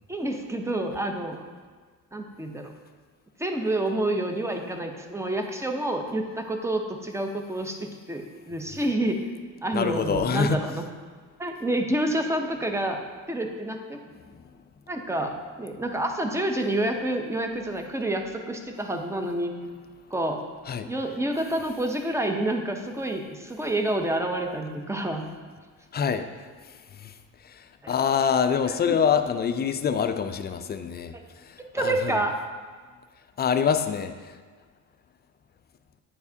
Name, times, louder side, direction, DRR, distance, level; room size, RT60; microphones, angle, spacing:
voice 1, 0.1-1.5 2.1-2.7 3.4-9.3 9.6-10.8 11.4-13.0 13.3-14.0 14.9-19.5 20.1-20.4 20.8-25.3 27.8-27.9 28.9-29.0 31.7-32.4, right 1 dB, 10° right, 4 dB, 0.6 m, -28 dB
voice 2, 9.7-10.6 14.3-14.4 20.6-20.9 25.9-26.3 26.9-27.1 27.4-32.2 33.4-34.4, left 7 dB, 30° left, 9 dB, 0.4 m, -26 dB
8.9 x 4.7 x 2.7 m, 1.5 s
cardioid pair, 95°, 34 cm